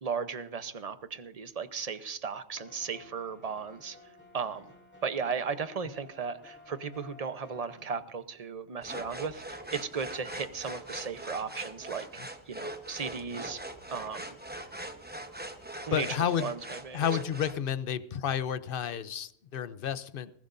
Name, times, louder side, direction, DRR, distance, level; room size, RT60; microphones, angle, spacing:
voice 1, 0.0-4.0 4.3-4.6 5.0-13.6 13.9-14.4 15.9-16.1 16.4-17.0, right 6 dB, 35° right, 11 dB, 0.9 m, -36 dB
sound 1, 2.5-7.8, left 2 dB, 10° left, 3.3 m, -54 dB
sound 2, 8.8-17.6, right 1 dB, 10° right, 1.0 m, -42 dB
voice 2, 15.9-16.5 16.9-20.3, left 8 dB, 55° left, 15 dB, 0.8 m, -31 dB
20.0 x 15.5 x 2.6 m, 0.71 s
omnidirectional pair, 1.2 m